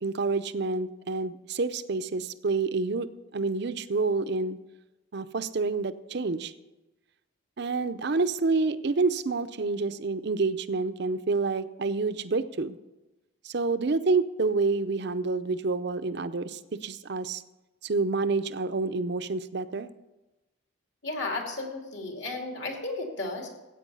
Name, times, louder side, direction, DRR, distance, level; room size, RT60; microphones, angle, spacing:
voice 1, 0.0-3.1 3.3-4.6 5.1-6.5 7.6-12.8 13.4-17.4 17.8-19.9, right 3 dB, 55° right, 11 dB, 0.6 m, -28 dB
voice 2, 21.0-23.5, left 2 dB, 60° left, 1 dB, 2.6 m, -34 dB
14.0 x 8.9 x 5.4 m, 1.0 s
head